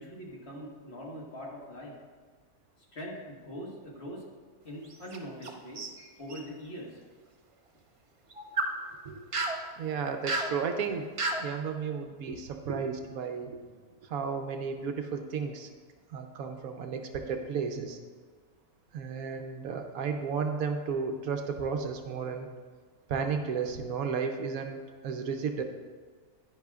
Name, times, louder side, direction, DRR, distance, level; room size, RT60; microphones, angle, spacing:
voice 1, 0.0-1.9 2.9-4.3 4.6-5.8 6.2-7.0, equal, 45° left, -3 dB, 1.7 m, -42 dB
sound 1, 4.8-5.5 5.8-6.4 8.3-8.7 9.3-9.6 10.3-10.5 11.2-11.5, right 2 dB, 50° right, 0.4 m, -31 dB
voice 2, 9.8-11.1 11.4-13.6 14.0-15.7 16.1-18.0 18.9-22.5 23.1-24.8 25.0-25.6, right 5 dB, 75° right, 6 dB, 1.1 m, -33 dB
10.5 x 10.0 x 2.4 m, 1.5 s
omnidirectional pair, 1.6 m